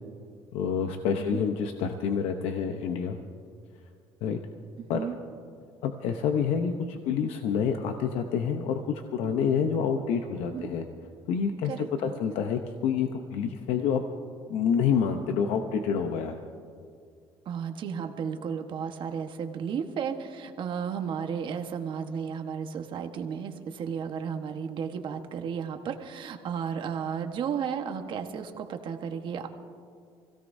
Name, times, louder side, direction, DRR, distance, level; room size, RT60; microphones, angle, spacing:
voice 1, 0.5-3.2 4.2-4.4 4.9-5.0 5.8-8.8 9.1-10.8 11.3-14.0 14.5-16.4, left 7 dB, 85° left, 6 dB, 0.8 m, -28 dB
voice 2, 11.6-12.1 17.4-29.5, right 7 dB, 55° right, 5 dB, 1.3 m, -33 dB
25.5 x 16.5 x 2.7 m, 2.2 s
cardioid pair, 110°, 10 cm